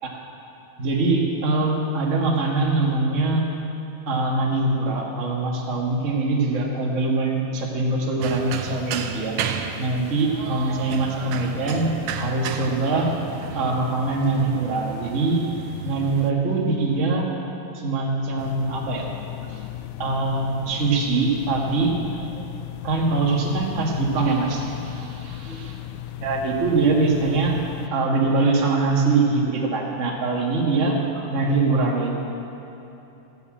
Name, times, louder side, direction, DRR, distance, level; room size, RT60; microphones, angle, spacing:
voice 1, 0.8-3.4 4.1-9.4 9.8-15.4 15.8-17.3 17.8-19.1 19.5-19.6 20.0-22.4 22.8-24.8 25.5-25.8 26.2-27.6 27.9-32.2, right 3 dB, 30° right, -3 dB, 1.5 m, -23 dB
sound 1, 8.2-16.3, right 7 dB, 80° right, 2.0 m, -33 dB
sound 2, 18.4-27.9, left 13 dB, 80° left, 1.9 m, -36 dB
14.5 x 7.0 x 8.6 m, 3.0 s
omnidirectional pair, 3.5 m